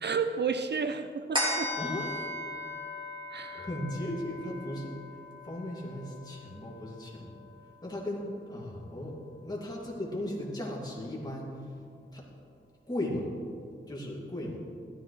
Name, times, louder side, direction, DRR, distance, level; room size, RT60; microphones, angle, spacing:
voice 1, 0.0-1.7 3.3-3.7, right 5 dB, 55° right, 9 dB, 0.5 m, -32 dB
sound 1, 1.3-8.1 8.6-8.7, left 1 dB, 25° right, 2.8 m, -37 dB
voice 2, 1.8-2.3 3.5-4.9 5.4-7.3 7.8-11.7 12.1-12.2 12.9-13.3 13.9-14.6, left 1 dB, 20° left, -4 dB, 2.5 m, -36 dB
15.0 x 13.0 x 3.3 m, 2.3 s
wide cardioid pair, 130°, 21 cm